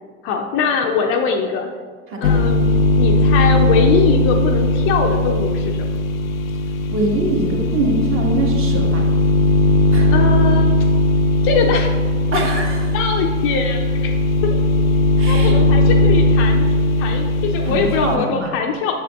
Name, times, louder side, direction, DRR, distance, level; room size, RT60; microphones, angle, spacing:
voice 1, 0.2-1.7 2.2-2.7 3.0-5.8 10.1-10.7 11.4-11.9 12.5-12.6 12.9-14.1 15.3-16.6 17.0-18.9, left 5 dB, 35° left, 3 dB, 0.5 m, -21 dB
sound 1, 2.2-18.2, left 2 dB, 80° left, 0.5 m, -17 dB
voice 2, 6.9-9.0 9.9-10.2 12.3-12.8 15.2-15.6 17.6-18.5, right 2 dB, 30° right, 0 dB, 1.4 m, -23 dB
8.1 x 6.8 x 2.3 m, 1.5 s
figure-of-eight pair, 80°, 41 cm